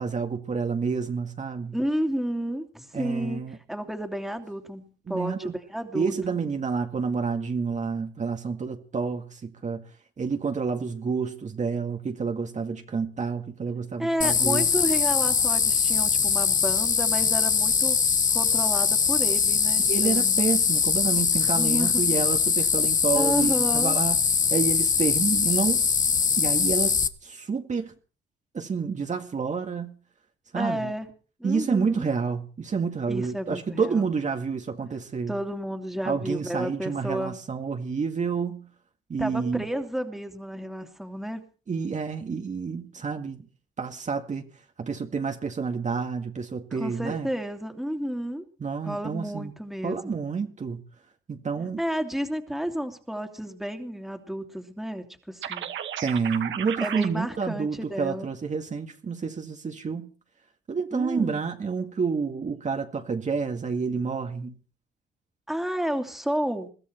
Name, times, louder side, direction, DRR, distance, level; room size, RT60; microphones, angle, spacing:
voice 1, 0.0-1.8 2.9-3.6 5.1-5.6 5.9-9.8 10.2-14.7 19.8-24.2 24.5-25.8 26.4-27.9 28.5-30.0 30.5-30.9 31.4-35.3 36.0-38.7 39.1-39.6 41.7-43.5 43.8-44.5 44.8-47.3 48.6-49.5 49.8-50.8 51.3-51.8 56.0-60.1 60.7-64.6, right 5 dB, 35° right, 2.0 m, -29 dB
voice 2, 1.7-3.4 3.7-6.4 14.0-18.0 18.3-20.4 21.3-22.0 23.1-24.0 30.5-31.1 31.4-32.0 33.1-34.1 35.3-37.4 39.2-41.4 46.7-48.4 48.8-50.2 51.8-55.7 56.8-58.3 60.9-61.4 65.5-66.7, equal, ahead, 2.8 m, -31 dB
sound 1, 14.2-27.1, left 6 dB, 40° left, 1.5 m, -22 dB
sound 2, 55.4-57.1, right 9 dB, 70° right, 1.9 m, -33 dB
22.0 x 14.5 x 4.4 m
cardioid pair, 90°, 20 cm